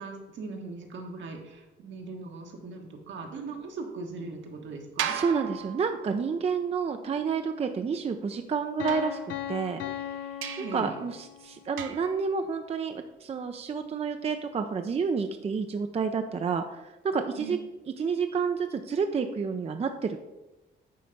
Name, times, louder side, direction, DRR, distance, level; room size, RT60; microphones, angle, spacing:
voice 1, 0.0-5.2 10.4-11.0 17.4-17.6, right 3 dB, 70° right, 3 dB, 1.4 m, -39 dB
voice 2, 5.0-9.2 9.5-10.1 10.7-17.6 18.0-20.2, right 5 dB, 30° right, 7 dB, 0.5 m, -29 dB
sound 1, 5.0-6.4 8.9-9.8 10.4-10.9 11.8-12.3, right 9 dB, 85° right, 0.6 m, -36 dB
Piano, 8.8-11.6, left 10 dB, 75° left, 0.6 m, -37 dB
9.2 x 3.3 x 5.2 m, 1.0 s
cardioid pair, 90°, 20 cm